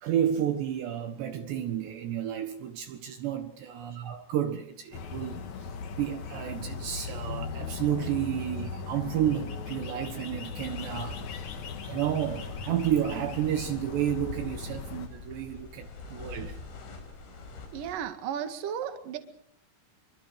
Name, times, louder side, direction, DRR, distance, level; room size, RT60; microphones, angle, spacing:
voice 1, 0.0-11.6 11.9-16.6, right 10 dB, 70° right, 3.3 m, -31 dB
sound 1, 4.9-15.1, left 5 dB, 55° left, 2.2 m, -38 dB
sound 2, 10.5-18.0, left 4 dB, 75° left, 7.4 m, -43 dB
voice 2, 17.7-19.2, right 9 dB, 55° right, 3.1 m, -34 dB
28.0 x 24.5 x 4.9 m
omnidirectional pair, 5.6 m